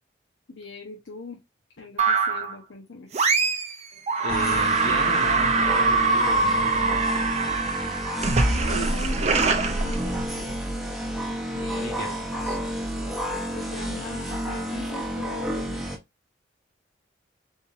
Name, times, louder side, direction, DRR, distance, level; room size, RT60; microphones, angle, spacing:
voice 1, 0.5-1.4 1.8-3.1 8.5-10.6 11.5-12.2 13.5-15.9, left 2 dB, 75° left, 1.0 m, -40 dB
sound 1, 2.0-2.6 3.1-3.8 4.1-10.5, right 4 dB, 35° right, 0.7 m, -23 dB
voice 2, 4.2-7.2 11.8-12.1 12.4-12.6, left 2 dB, 55° left, 1.5 m, -35 dB
sound 2, 4.3-16.0, equal, ahead, 0.8 m, -30 dB
4.3 x 3.4 x 2.6 m
head